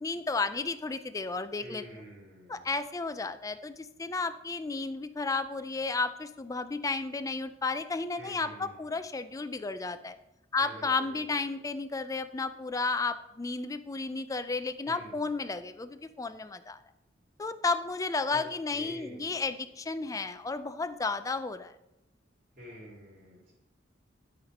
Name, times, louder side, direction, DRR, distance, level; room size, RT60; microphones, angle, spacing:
voice 1, 0.0-2.0 2.5-10.2 10.5-16.8 17.4-21.7, left 3 dB, 20° left, 10 dB, 0.4 m, -33 dB
voice 2, 1.6-2.7 8.2-8.9 10.6-11.6 14.8-15.2 18.3-18.4 18.7-19.4 22.6-23.5, equal, 50° right, -8 dB, 3.2 m, -47 dB
12.0 x 4.4 x 5.1 m, 0.92 s
head